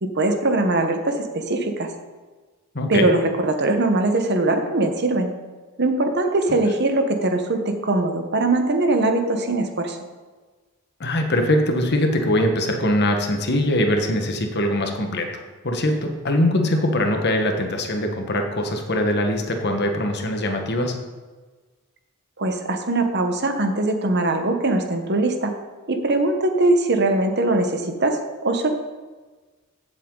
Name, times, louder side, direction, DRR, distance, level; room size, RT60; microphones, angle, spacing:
voice 1, 0.0-1.9 2.9-5.3 5.8-10.0 22.4-25.5 25.9-28.7, right 2 dB, 50° right, 5 dB, 1.2 m, -21 dB
voice 2, 2.7-3.1 11.0-15.3 15.6-20.9, left 1 dB, 50° left, 4 dB, 1.4 m, -22 dB
16.0 x 7.6 x 3.9 m, 1.3 s
head